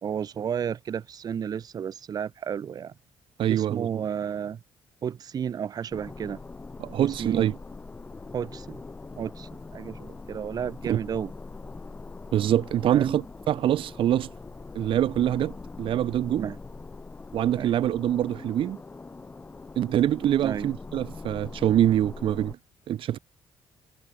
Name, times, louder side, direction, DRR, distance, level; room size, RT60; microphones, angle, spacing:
voice 1, 0.0-2.9 3.5-4.6 5.0-6.4 7.0-7.5 8.3-8.8 9.2-11.3 12.9-13.2 16.3-16.6 17.5-17.8 20.4-20.7, right 8 dB, 40° right, 1.3 m, -32 dB
voice 2, 3.4-4.0 6.8-7.6 10.9-11.0 12.3-14.3 14.7-16.5 17.3-18.8 19.7-22.6 22.9-23.2, right 11 dB, 65° right, 1.5 m, -25 dB
sound 1, 5.9-22.5, left 3 dB, 20° left, 5.1 m, -42 dB
cardioid pair, 145°, 10 cm